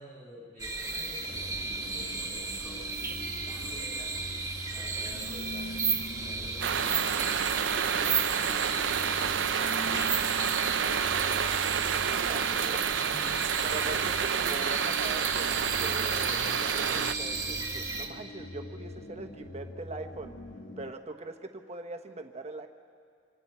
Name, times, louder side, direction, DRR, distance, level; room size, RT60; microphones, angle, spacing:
voice 1, 0.0-2.9 3.3-4.1 4.7-8.7 9.1-11.5 12.3-13.3, equal, 15° left, -5 dB, 6.9 m, -50 dB
sound 1, 0.6-18.1, right 4 dB, 20° right, 1.5 m, -34 dB
sound 2, 1.3-20.9, left 1 dB, 65° left, 1.2 m, -44 dB
sound 3, 6.6-17.1, right 8 dB, 70° right, 0.5 m, -29 dB
voice 2, 11.9-12.8 13.6-20.4 20.8-22.7, right 3 dB, 35° right, 6 dB, 1.1 m, -42 dB
25.5 x 25.0 x 4.4 m, 2.2 s
head